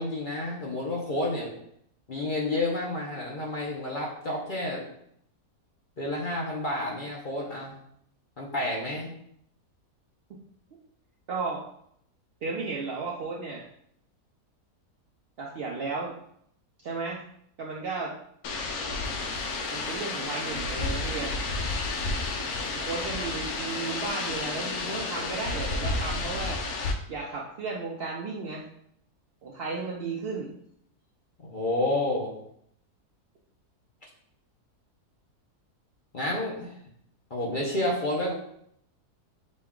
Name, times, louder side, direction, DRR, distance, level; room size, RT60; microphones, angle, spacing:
voice 1, 0.0-1.5 2.1-4.8 6.0-7.8 8.4-9.1 31.4-32.3 36.1-36.7 37.3-38.3, left 1 dB, 45° left, -3 dB, 0.6 m, -30 dB
voice 2, 11.3-11.6 12.4-13.7 15.4-16.1 16.8-17.2 17.6-18.1 19.7-21.4 22.7-26.6 27.1-28.7 29.4-30.5, right 4 dB, 70° right, -3 dB, 0.5 m, -34 dB
sound 1, 18.4-26.9, left 3 dB, 75° left, 1.0 m, -31 dB
6.2 x 2.3 x 3.6 m, 0.71 s
omnidirectional pair, 1.7 m